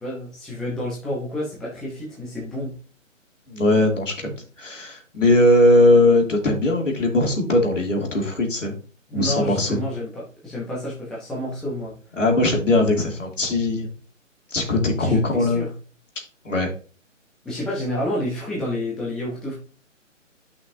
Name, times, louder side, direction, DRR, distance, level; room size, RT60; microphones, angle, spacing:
voice 1, 0.0-2.7 9.1-11.9 15.0-15.7 17.4-19.5, left 1 dB, ahead, -6 dB, 0.8 m, -29 dB
voice 2, 3.5-4.3 4.6-8.7 9.1-9.8 12.2-13.9 14.5-15.7 16.4-16.7, left 1 dB, 70° left, 1 dB, 2.7 m, -19 dB
9.7 x 5.7 x 2.7 m, 0.37 s
figure-of-eight pair, 145°, 39 cm